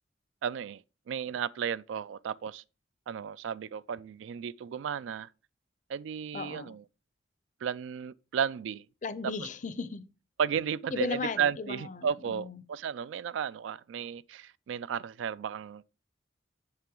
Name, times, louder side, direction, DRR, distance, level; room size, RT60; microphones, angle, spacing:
voice 1, 0.4-2.6 3.1-5.3 5.9-6.8 7.6-8.8 10.4-15.9, right 7 dB, 90° right, 0.3 m, -34 dB
voice 2, 6.3-6.7 9.0-10.0 10.9-12.6, left 4 dB, 45° left, 0.5 m, -36 dB
6.9 x 5.6 x 3.7 m
head